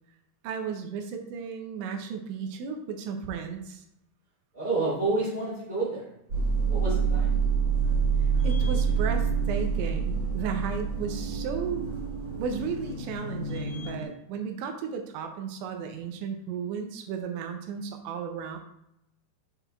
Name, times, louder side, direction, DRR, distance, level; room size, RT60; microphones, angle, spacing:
voice 1, 0.4-3.8 8.2-11.8 12.4-18.6, right 6 dB, 80° right, 4 dB, 2.9 m, -34 dB
voice 2, 4.5-6.1 6.7-7.3, right 2 dB, 25° left, -7 dB, 1.0 m, -29 dB
sound 1, 6.3-14.0, right 5 dB, 40° right, 2.3 m, -27 dB
7.9 x 5.9 x 2.3 m, 0.81 s
omnidirectional pair, 5.5 m